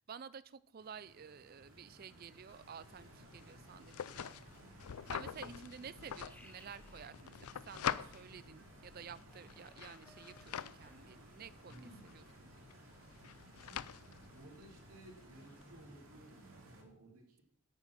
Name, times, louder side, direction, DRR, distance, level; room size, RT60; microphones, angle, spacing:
voice 1, 0.0-4.4 5.1-12.2, right 7 dB, 40° right, 18 dB, 0.4 m, -52 dB
Stream, 0.8-16.8, right 1 dB, 65° right, 2.7 m, -58 dB
sound 1, 2.5-15.9, left 8 dB, 85° left, 0.5 m, -46 dB
voice 2, 5.2-5.9 11.7-12.1 13.5-13.8 14.3-17.4, right 1 dB, 85° right, 1 dB, 2.9 m, -57 dB
sound 2, 6.3-11.8, left 1 dB, 5° left, 0.9 m, -65 dB
10.0 x 8.6 x 5.7 m, 0.67 s
head